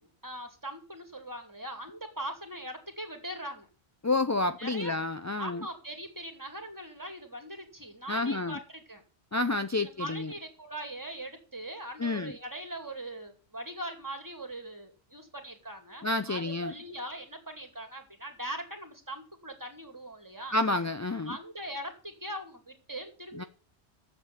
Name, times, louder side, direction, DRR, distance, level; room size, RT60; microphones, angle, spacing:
voice 1, 0.0-3.7 4.6-4.9 5.4-9.0 9.8-20.5 21.3-23.5, right 1 dB, 15° right, 2.4 m, -41 dB
voice 2, 4.0-5.7 8.1-8.6 9.3-10.3 12.0-12.3 16.0-16.7 20.5-21.4 23.4-23.5, left 2 dB, 25° left, 0.3 m, -29 dB
9.1 x 7.5 x 8.3 m
omnidirectional pair, 1.1 m